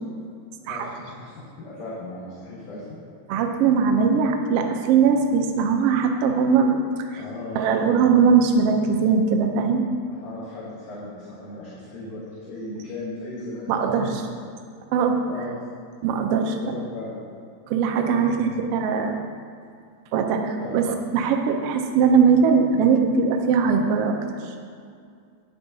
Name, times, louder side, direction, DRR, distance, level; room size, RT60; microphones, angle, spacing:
voice 1, 0.7-3.0 7.2-8.1 10.1-14.1 15.3-15.5 16.6-17.2 18.0-18.7 20.6-20.8, left 2 dB, 65° left, -8 dB, 2.3 m, -36 dB
voice 2, 3.3-7.2 7.5-9.8 13.7-14.2 14.9-15.5 16.0-16.7 17.7-19.2 20.1-24.2 24.4-24.5, right 5 dB, 85° right, 4 dB, 1.3 m, -20 dB
9.4 x 9.0 x 2.7 m, 2.3 s
omnidirectional pair, 3.4 m